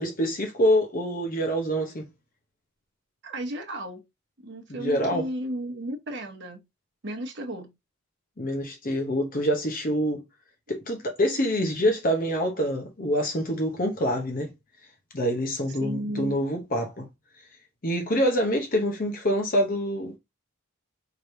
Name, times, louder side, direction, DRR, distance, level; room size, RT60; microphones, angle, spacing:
voice 1, 0.0-2.1 4.8-5.3 8.4-10.2 10.7-14.5 15.1-17.1 17.8-20.2, equal, 40° left, 0.8 m, -26 dB
voice 2, 3.2-4.0 4.4-6.6 7.0-7.7 15.8-16.4, equal, 55° right, 1.1 m, -34 dB
4.9 x 3.2 x 2.6 m
head